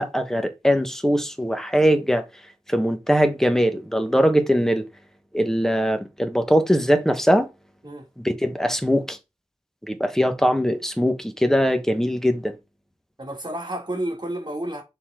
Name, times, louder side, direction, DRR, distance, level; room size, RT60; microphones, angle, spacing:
voice 1, 0.0-2.2 2.7-4.8 5.3-7.5 8.2-9.2 9.9-12.5, equal, 5° left, 1.3 m, -21 dB
voice 2, 13.2-14.8, right 1 dB, 35° right, 2.9 m, -30 dB
6.9 x 4.2 x 3.8 m
wide cardioid pair, 55°, 13 cm